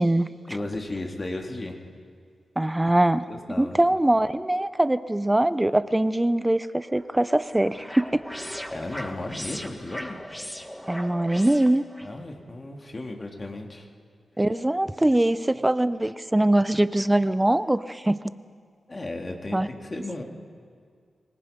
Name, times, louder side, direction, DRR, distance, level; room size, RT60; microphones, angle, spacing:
voice 1, 0.5-1.7 3.3-3.8 8.7-10.2 12.0-13.9 18.9-20.2, left 2 dB, 40° left, 1 dB, 3.1 m, -34 dB
voice 2, 2.6-3.3 3.6-8.3 10.9-11.8 14.4-18.2 19.5-19.7, right 1 dB, 15° right, 14 dB, 0.8 m, -22 dB
sound 1, 6.9-12.1, equal, 10° left, 1.7 m, -38 dB
25.0 x 20.0 x 5.4 m, 2.1 s
cardioid pair, 45°, 0 cm